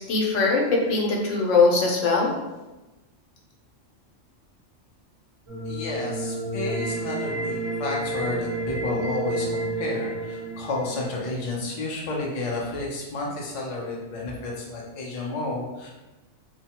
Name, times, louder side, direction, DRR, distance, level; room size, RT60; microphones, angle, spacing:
voice 1, 0.0-2.3, left 3 dB, 85° left, -1 dB, 1.0 m, -21 dB
sound 1, 5.5-11.5, right 2 dB, 30° right, 0.8 m, -30 dB
voice 2, 5.6-15.9, left 2 dB, 45° left, -3 dB, 0.4 m, -31 dB
3.0 x 2.1 x 2.8 m, 1.1 s
omnidirectional pair, 1.3 m